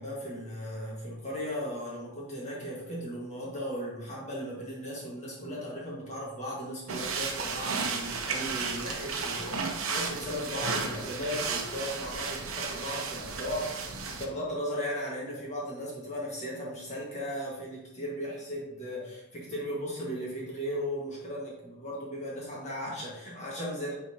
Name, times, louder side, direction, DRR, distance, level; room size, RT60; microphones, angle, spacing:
voice 1, 0.0-13.7 14.1-23.9, equal, 30° left, -4 dB, 1.8 m, -36 dB
sound 1, 6.9-14.3, right 4 dB, 70° right, 0.9 m, -33 dB
9.0 x 4.4 x 2.9 m, 0.91 s
head